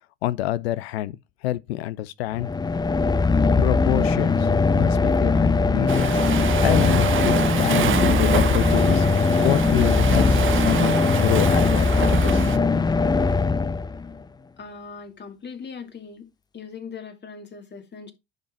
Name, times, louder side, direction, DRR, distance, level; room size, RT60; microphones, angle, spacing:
voice 1, 0.2-2.5 3.6-4.5 4.8-6.2 6.6-12.4, left 15 dB, 80° left, 0.6 m, -27 dB
sound 1, 2.3-14.2, left 4 dB, 15° left, 0.5 m, -20 dB
Waves surf, 5.9-12.6, right 9 dB, 40° right, 0.9 m, -27 dB
voice 2, 14.6-16.3 16.5-18.1, left 5 dB, 35° left, 2.4 m, -39 dB
10.5 x 3.9 x 4.4 m
hypercardioid pair, 65°, 31 cm